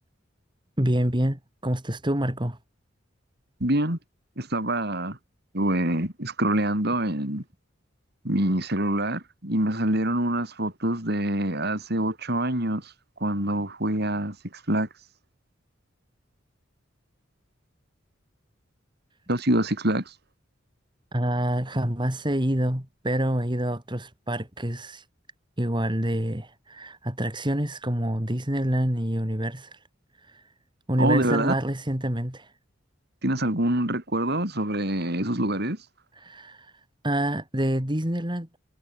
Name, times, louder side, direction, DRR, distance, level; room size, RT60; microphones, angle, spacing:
voice 1, 0.8-2.6 21.1-25.0 25.6-29.8 30.2-30.4 30.9-32.5 36.1-36.7 37.0-38.6, right 1 dB, 25° right, 3.4 m, -27 dB
voice 2, 3.6-4.0 4.4-5.2 5.5-7.4 8.2-12.9 13.2-14.4 14.7-14.9 19.3-20.0 31.0-31.5 33.2-35.8, right 1 dB, 55° right, 5.7 m, -25 dB
head